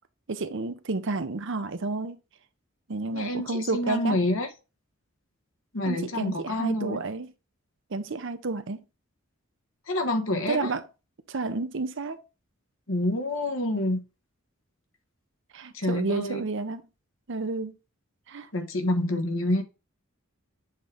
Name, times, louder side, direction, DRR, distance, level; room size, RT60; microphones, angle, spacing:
voice 1, 0.3-2.2 2.9-4.2 5.8-7.3 7.9-8.8 10.5-10.8 11.3-12.2 15.5-16.8 17.3-17.8 18.3-18.5, right 3 dB, 60° right, 0.7 m, -31 dB
voice 2, 3.1-4.5 5.7-7.0 9.9-10.7 12.9-14.0 15.7-16.4 18.5-19.6, left 1 dB, 65° left, 1.3 m, -27 dB
7.4 x 3.8 x 3.4 m
head